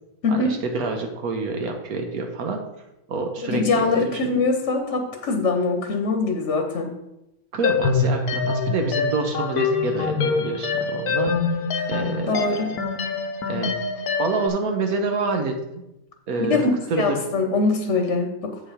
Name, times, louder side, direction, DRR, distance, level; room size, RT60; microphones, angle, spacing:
voice 1, 0.3-2.6 3.1-3.8 7.5-11.3 11.9-12.7 13.5-13.7 14.2-15.8 16.3-16.6 16.9-17.2, right 3 dB, 75° right, 4 dB, 1.4 m, -27 dB
voice 2, 3.4-6.9 11.8-11.9 12.3-12.7 16.5-16.7 17.0-18.5, left 3 dB, 55° left, 4 dB, 1.1 m, -23 dB
sound 1, 7.6-14.5, left 5 dB, 85° left, 1.3 m, -24 dB
8.0 x 5.5 x 4.9 m, 0.91 s
omnidirectional pair, 1.6 m